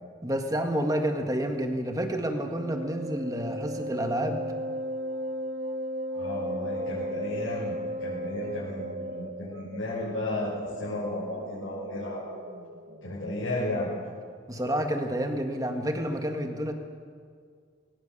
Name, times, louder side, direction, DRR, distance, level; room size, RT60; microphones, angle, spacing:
voice 1, 0.2-4.4 14.5-16.7, equal, 20° right, 5 dB, 1.7 m, -29 dB
Wind instrument woodwind instrument, 2.4-9.5, equal, 40° right, 0.8 m, -34 dB
sound 1, 3.8-5.8 6.1-6.4 6.7-7.2 7.7-14.6, right 1 dB, 60° right, 1.3 m, -46 dB
voice 2, 6.1-12.2 13.0-13.9, left 1 dB, 90° left, -9 dB, 6.8 m, -33 dB
22.0 x 20.0 x 7.2 m, 2.1 s
head